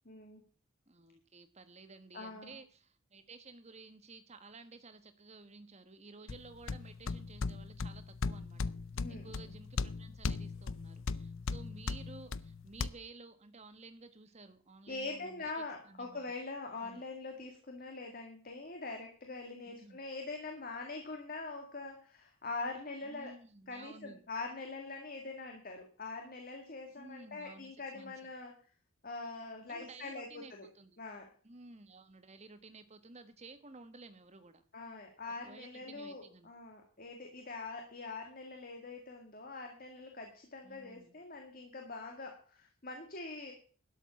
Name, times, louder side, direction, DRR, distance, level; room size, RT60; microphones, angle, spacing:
voice 1, 0.1-0.4 2.1-2.6 9.0-9.5 14.9-23.3 23.7-28.5 29.0-30.7 31.0-31.3 34.7-43.5, left 3 dB, 40° left, 3 dB, 1.9 m, -43 dB
voice 2, 0.9-8.7 9.1-16.2 16.8-17.0 19.6-20.0 23.0-24.2 26.9-28.1 29.7-31.0 31.4-34.6 35.4-36.5 40.6-41.2, right 3 dB, 30° right, 9 dB, 1.3 m, -54 dB
sound 1, 6.3-12.9, left 4 dB, 60° left, 0.5 m, -38 dB
12.5 x 7.3 x 7.1 m, 0.42 s
head